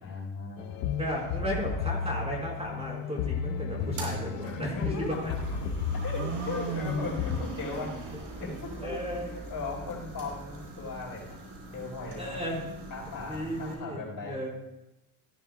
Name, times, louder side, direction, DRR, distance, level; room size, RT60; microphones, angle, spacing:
voice 1, 0.0-0.9 4.4-5.2 6.0-7.9 8.4-8.9 9.5-11.4 11.7-12.4 12.9-14.4, left 3 dB, 45° left, -3 dB, 4.5 m, -37 dB
sound 1, 0.6-7.4, left 6 dB, 85° left, 1.0 m, -33 dB
voice 2, 1.0-4.9 5.2-5.3 8.8-9.3 12.2-12.6 13.3-14.5, equal, 10° right, -3 dB, 4.5 m, -34 dB
sound 2, 3.8-13.7, right 3 dB, 65° right, 4.0 m, -40 dB
16.0 x 11.0 x 2.3 m, 0.93 s
supercardioid pair, 85°, 50 cm